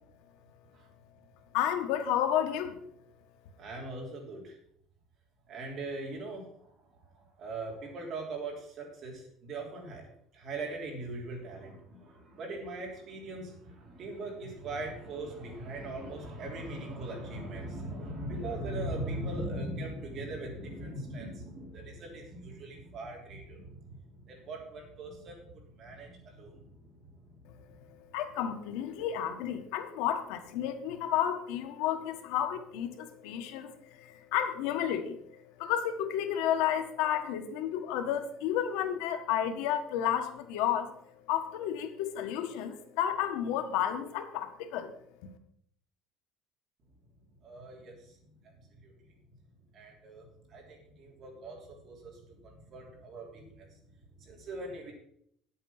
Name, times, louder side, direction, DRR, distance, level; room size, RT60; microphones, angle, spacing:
voice 1, 1.5-2.8 28.1-35.2 35.6-40.9 41.3-44.9, left 10 dB, 85° left, 7 dB, 1.4 m, -31 dB
voice 2, 3.6-4.6 5.5-6.5 7.4-10.0 10.3-27.4 47.4-48.2 48.8-48.9 49.7-53.8 54.2-54.9, right 2 dB, 40° right, 0 dB, 3.4 m, -40 dB
9.7 x 8.5 x 5.8 m, 0.68 s
cardioid pair, 165°, 0 cm